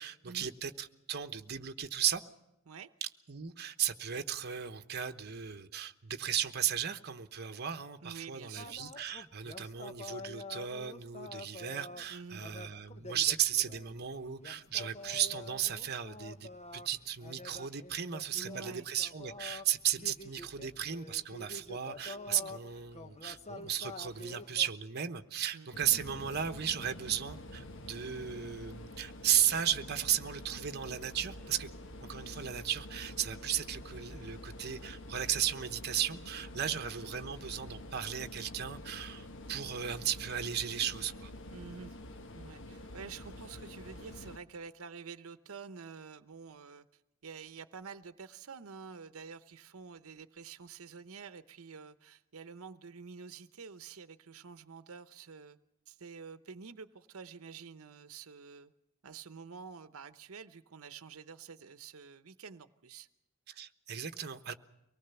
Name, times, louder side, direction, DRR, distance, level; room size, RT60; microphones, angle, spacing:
voice 1, 0.0-2.2 3.0-31.7 32.0-41.3 63.5-64.5, right 10 dB, 50° right, 1.0 m, -35 dB
voice 2, 8.0-8.7 12.1-12.4 18.3-18.9 20.0-20.1 22.4-22.5 25.5-25.7 36.6-36.8 41.5-42.0 42.3-55.6 55.9-58.7 59.0-63.1, right 5 dB, 85° right, 0.8 m, -48 dB
sound 1, 8.6-24.7, left 2 dB, 30° left, 0.9 m, -47 dB
sound 2, 25.7-44.4, left 1 dB, 60° left, 1.3 m, -47 dB
24.0 x 18.5 x 6.9 m
head